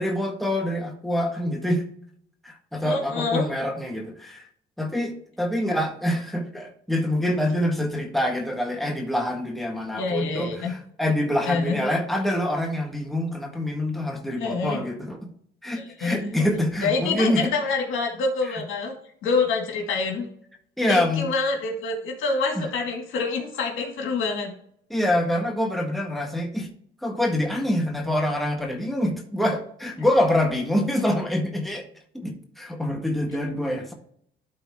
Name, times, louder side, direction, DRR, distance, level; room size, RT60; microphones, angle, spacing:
voice 1, 0.0-1.8 2.4-4.4 4.8-15.3 15.6-17.5 20.8-21.3 22.6-22.7 24.9-26.7 27.0-31.8 32.1-33.9, left 1 dB, ahead, 1 dB, 1.5 m, -25 dB
voice 2, 2.8-3.5 10.0-10.7 11.4-11.9 14.4-14.8 15.8-16.3 16.8-18.9 19.2-20.3 20.9-24.5, left 4 dB, 80° left, 1 dB, 2.1 m, -26 dB
12.0 x 4.1 x 3.6 m, 0.66 s
cardioid pair, 90°, 20 cm